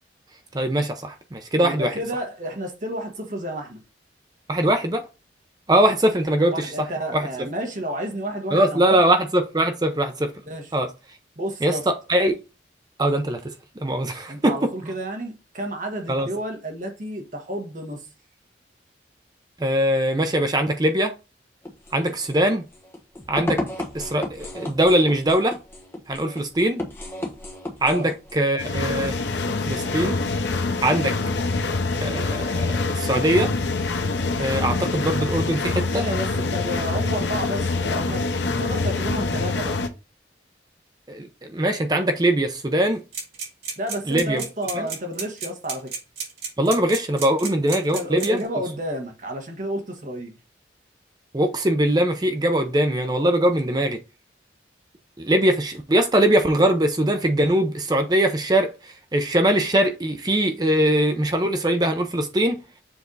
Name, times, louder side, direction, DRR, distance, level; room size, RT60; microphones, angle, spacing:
voice 1, 0.5-1.9 4.5-5.0 5.7-6.7 7.1-7.3 8.5-10.3 10.7-10.9 11.6-11.7 12.1-12.4 13.0-13.4 13.8-14.5 16.1-16.3 19.6-21.1 21.9-22.6 23.3-23.6 23.9-25.6 26.1-26.8 27.8-29.2 29.7-30.2 30.8-31.1 32.0-33.5 34.4-36.0 41.1-43.0 44.1-44.4 44.7-44.9 46.6-48.4 51.3-54.0 55.2-62.6, right 1 dB, 20° right, 0.6 m, -21 dB
voice 2, 1.6-3.8 6.5-9.0 10.4-10.7 11.3-11.9 14.3-18.1 27.8-28.1 35.9-38.3 38.6-39.7 43.8-45.9 47.9-50.4, equal, 45° right, 1.5 m, -31 dB
sound 1, 21.6-28.4, left 1 dB, 15° left, 1.0 m, -34 dB
sound 2, 28.6-39.9, left 3 dB, 75° left, 0.8 m, -25 dB
sound 3, 43.1-48.5, right 5 dB, 60° right, 3.0 m, -31 dB
7.1 x 3.4 x 4.0 m
head